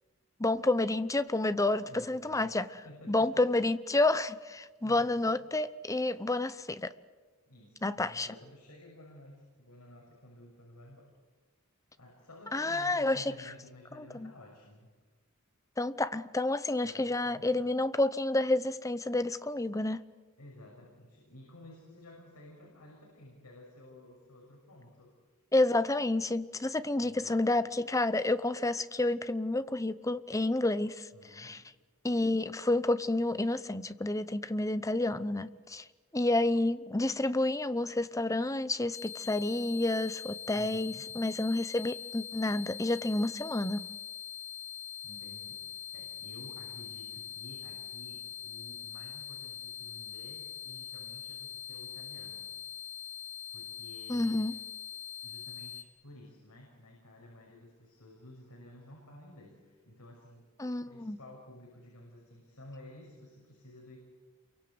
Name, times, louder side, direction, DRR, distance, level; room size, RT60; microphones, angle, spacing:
voice 1, 0.4-2.7 3.1-6.9 7.8-8.3 12.5-13.3 14.0-14.3 15.8-20.0 25.5-31.1 31.4-31.6 32.0-35.8 36.1-43.8 54.1-54.5 60.6-61.2, left 2 dB, 15° left, 14 dB, 0.8 m, -29 dB
voice 2, 1.9-3.6 4.8-5.4 7.5-11.1 12.0-14.9 16.8-17.7 20.4-25.1 27.0-27.7 31.1-31.6 40.5-41.1 45.0-52.5 53.5-54.6 55.2-60.5 60.9-64.0, left 1 dB, 85° left, -1 dB, 6.3 m, -53 dB
sound 1, 38.9-55.8, left 9 dB, 55° left, 2.4 m, -43 dB
28.5 x 23.5 x 8.0 m, 1.4 s
head